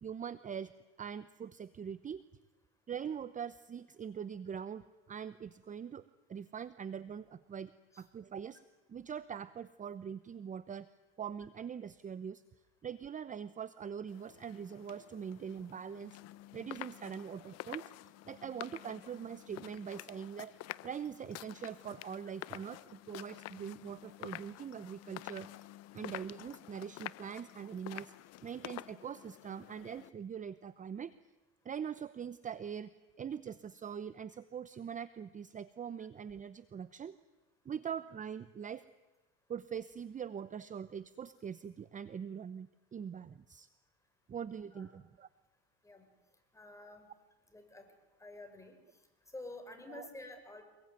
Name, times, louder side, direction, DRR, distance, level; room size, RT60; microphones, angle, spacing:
voice 1, 0.0-0.7 1.0-2.2 2.9-8.6 8.9-10.9 11.2-12.4 12.8-16.2 16.5-20.5 20.8-25.5 25.9-28.1 28.4-31.1 31.6-37.2 37.6-38.8 39.5-43.7 44.3-45.3 49.9-50.1, right 7 dB, 25° right, 14 dB, 0.8 m, -43 dB
sound 1, 14.1-30.1, left 16 dB, 55° left, 0.8 m, -49 dB
voice 2, 46.5-47.1 47.5-47.8 48.2-48.8 49.3-50.6, left 2 dB, 10° left, 5 dB, 6.2 m, -49 dB
25.5 x 21.5 x 9.4 m, 1.1 s
supercardioid pair, 110°, 31 cm